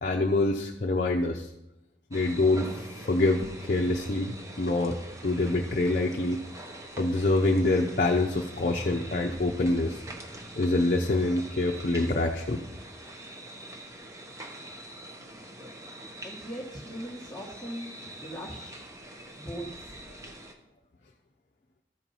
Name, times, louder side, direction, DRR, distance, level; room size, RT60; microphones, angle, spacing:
voice 1, 0.0-1.5 2.1-5.0 5.2-6.4 7.0-10.0 10.6-12.6 15.2-15.3, left 2 dB, 45° left, 1 dB, 0.6 m, -26 dB
sound 1, 2.1-20.5, right 1 dB, 15° right, 0.8 m, -44 dB
voice 2, 16.2-17.9 18.2-18.8 19.3-19.7, equal, ahead, -7 dB, 1.2 m, -39 dB
13.5 x 4.5 x 5.5 m, 0.90 s
head